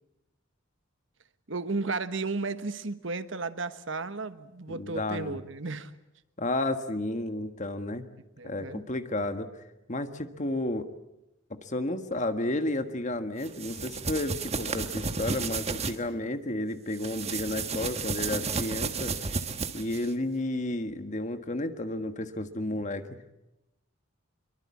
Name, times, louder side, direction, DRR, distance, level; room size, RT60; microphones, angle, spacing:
voice 1, 1.5-5.9 8.4-8.8, right 3 dB, 70° right, 12 dB, 1.3 m, -34 dB
voice 2, 4.7-5.4 6.4-8.1 8.4-9.6 9.9-10.9 11.6-19.1 19.7-23.2, left 1 dB, 40° left, 9 dB, 1.6 m, -32 dB
sound 1, 13.4-16.0 16.9-20.1, right 4 dB, 35° right, 1.4 m, -32 dB
24.5 x 23.0 x 8.5 m, 0.93 s
head